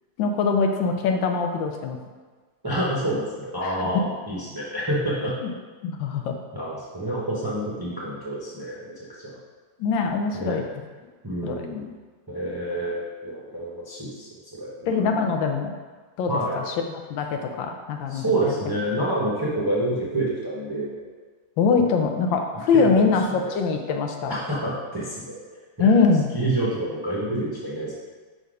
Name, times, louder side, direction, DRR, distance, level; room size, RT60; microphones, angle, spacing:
voice 1, 0.2-2.0 3.6-3.8 5.4-5.5 5.8-6.4 9.8-10.7 11.4-11.6 14.9-15.8 16.2-16.7 17.1-18.5 19.5-19.6 21.6-23.2 23.5-24.3 25.8-26.3, left 5 dB, 85° left, 4 dB, 1.4 m, -23 dB
voice 2, 2.6-5.3 6.5-8.8 9.2-9.4 10.3-10.6 11.2-11.9 12.3-15.2 16.3-16.6 18.1-21.0 22.7-23.5 24.3-25.4 25.8-25.9 26.3-27.9, right 1 dB, 25° right, -6 dB, 0.5 m, -28 dB
5.3 x 3.8 x 4.9 m, 1.4 s
omnidirectional pair, 2.1 m